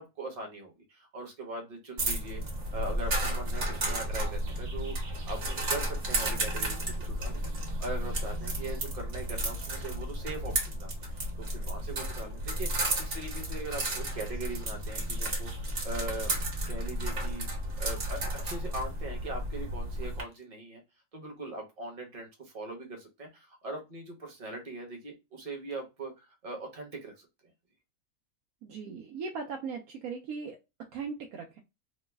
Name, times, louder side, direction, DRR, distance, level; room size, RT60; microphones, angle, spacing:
voice 1, 0.0-2.4 2.7-4.9 5.3-7.4 7.8-15.5 15.8-16.3 16.7-17.5 17.8-20.8 21.1-27.3, right 2 dB, 30° right, 1 dB, 0.8 m, -40 dB
sound 1, 2.0-20.2, right 1 dB, 55° right, 1.4 m, -33 dB
voice 2, 28.6-30.6 30.9-31.6, right 5 dB, 85° right, 1 dB, 1.1 m, -38 dB
3.1 x 2.0 x 3.3 m, 0.25 s
omnidirectional pair, 1.5 m